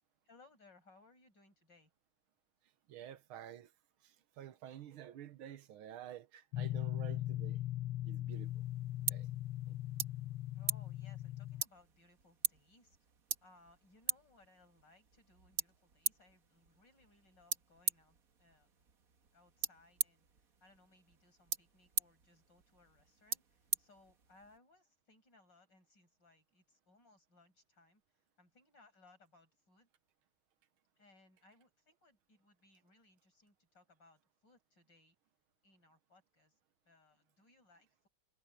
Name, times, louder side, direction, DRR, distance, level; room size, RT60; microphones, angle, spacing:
voice 1, 0.2-1.9 10.5-13.1 13.4-18.9 19.3-29.9 31.0-35.2 35.6-36.6 36.9-38.1, left 2 dB, 60° left, 7.2 m, -66 dB
voice 2, 2.9-3.7 4.0-7.6 8.0-8.7 9.1-9.3, right 11 dB, 90° right, 1.8 m, -50 dB
sound 1, 6.5-11.6, left 14 dB, 85° left, 1.7 m, -39 dB
sound 2, 8.3-24.6, right 6 dB, 45° right, 1.8 m, -43 dB
omnidirectional pair, 2.2 m